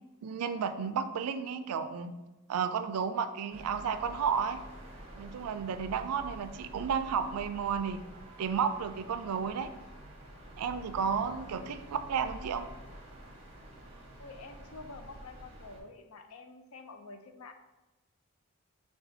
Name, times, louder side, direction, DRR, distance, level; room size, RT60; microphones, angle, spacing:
voice 1, 0.2-2.1 2.5-4.6 5.2-8.0 8.4-9.7 10.6-12.7, right 6 dB, 90° right, 9 dB, 0.4 m, -32 dB
sound 1, 3.5-15.8, right 1 dB, 25° right, 0.7 m, -48 dB
voice 2, 14.2-17.5, left 3 dB, 80° left, 6 dB, 0.5 m, -48 dB
6.8 x 2.3 x 2.7 m, 1.1 s
head